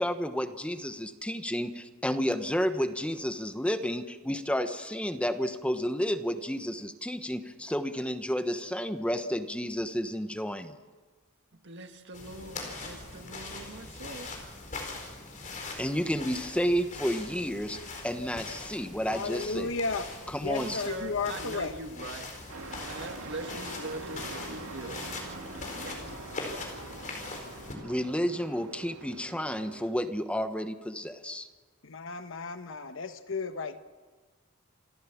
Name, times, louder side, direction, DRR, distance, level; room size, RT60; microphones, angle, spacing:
voice 1, 0.0-10.8 15.8-17.8 18.0-19.7 20.3-20.8 27.8-31.5, equal, 5° left, 1.0 m, -31 dB
voice 2, 11.6-14.3 20.5-22.3 22.8-26.2, right 2 dB, 55° right, 1.9 m, -42 dB
sound 1, 12.1-27.7, left 3 dB, 40° left, 4.7 m, -41 dB
voice 3, 19.1-20.0 20.4-21.7 31.8-33.8, left 4 dB, 65° left, 1.3 m, -33 dB
Truck, 22.5-29.9, right 2 dB, 80° right, 2.1 m, -44 dB
27.5 x 14.5 x 7.2 m
head